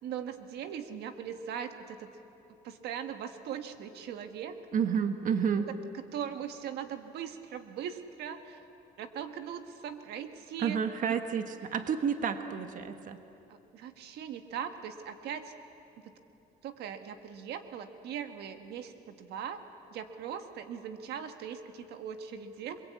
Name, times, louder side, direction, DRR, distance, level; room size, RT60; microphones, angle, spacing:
voice 1, 0.0-2.1 2.6-4.6 5.7-5.8 6.1-8.6 9.0-11.1 13.5-15.5 16.0-16.1 16.6-19.6 19.9-22.8, right 8 dB, 75° right, 7 dB, 1.6 m, -40 dB
voice 2, 4.7-5.7 10.6-13.2, right 7 dB, 50° right, 7 dB, 1.5 m, -30 dB
28.5 x 22.5 x 8.5 m, 2.8 s
cardioid pair, 110°, 17 cm